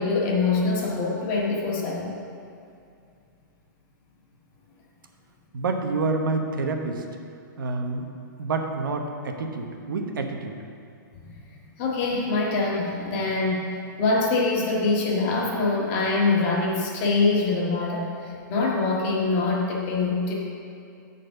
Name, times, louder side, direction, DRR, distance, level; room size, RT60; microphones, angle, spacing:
voice 1, 0.0-2.1 11.8-13.7 14.0-20.3, left 3 dB, 35° left, -3 dB, 1.7 m, -24 dB
voice 2, 5.5-7.0 7.6-8.0 8.4-10.6, right 3 dB, 90° right, 4 dB, 1.0 m, -28 dB
9.1 x 4.2 x 6.7 m, 2.5 s
hypercardioid pair, 155°, 11 cm